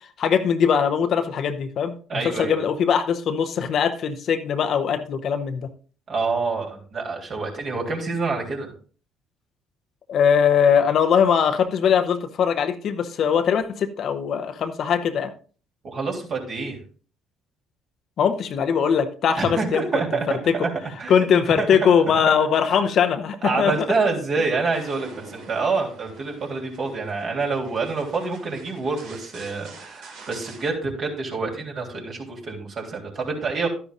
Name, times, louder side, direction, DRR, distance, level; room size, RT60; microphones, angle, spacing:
voice 1, 0.2-5.7 10.1-15.3 18.2-19.8 20.5-20.6 21.1-23.9, left 7 dB, 55° left, 9 dB, 0.8 m, -21 dB
voice 2, 2.1-2.6 6.1-8.7 15.8-16.8 19.4-20.7 21.0-21.1 21.6-21.9 22.6-22.7 23.4-33.7, right 4 dB, 50° right, 0 dB, 3.3 m, -27 dB
sound 1, 24.7-30.7, right 4 dB, 70° right, 2.0 m, -46 dB
12.0 x 10.0 x 2.5 m, 0.40 s
hypercardioid pair, 55°, 0 cm